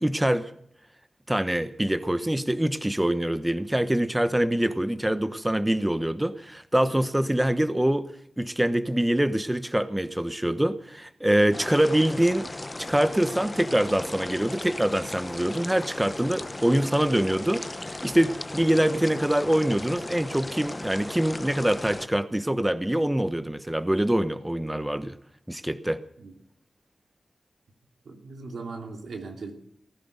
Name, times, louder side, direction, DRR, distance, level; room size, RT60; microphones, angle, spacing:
voice 1, 0.0-0.5 1.3-8.1 8.4-12.5 12.8-25.1 25.5-26.0, right 1 dB, 15° right, 1.1 m, -24 dB
sound 1, 11.5-22.1, left 2 dB, 30° left, 0.9 m, -37 dB
voice 2, 28.0-29.5, right 4 dB, 90° right, 2.7 m, -38 dB
19.0 x 11.0 x 6.7 m
cardioid pair, 45°, 0 cm